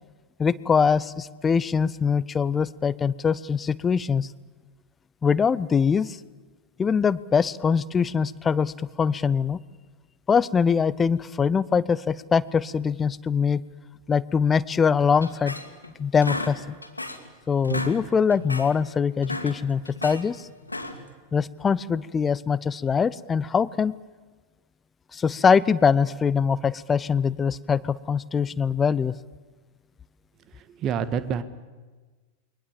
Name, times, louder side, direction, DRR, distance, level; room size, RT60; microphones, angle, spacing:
voice 1, 0.4-4.3 5.2-6.2 6.8-9.6 10.3-13.6 14.1-15.6 16.0-16.8 17.5-20.5 21.3-23.9 25.1-29.2, left 6 dB, 20° left, 19 dB, 0.7 m, -23 dB
sound 1, 15.2-15.9 16.2-17.3 17.6-18.0 18.3-18.7 19.1-20.2 20.6-21.1, left 1 dB, 85° left, 2.3 m, -33 dB
voice 2, 30.5-31.4, right 7 dB, 35° right, 12 dB, 1.7 m, -28 dB
28.5 x 23.0 x 7.4 m, 1.4 s
figure-of-eight pair, 90°, 0 cm